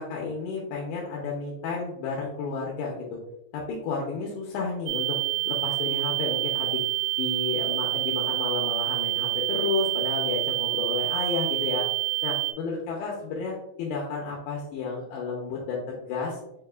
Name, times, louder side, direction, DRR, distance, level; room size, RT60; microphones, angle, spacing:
voice 1, 0.0-3.2 3.5-5.2 5.4-6.8 7.2-11.9 12.2-16.4, left 4 dB, 80° left, -2 dB, 2.5 m, -31 dB
sound 1, 4.9-12.5, right 23 dB, 85° right, 2.5 m, -27 dB
7.3 x 2.8 x 2.3 m, 0.84 s
omnidirectional pair, 5.2 m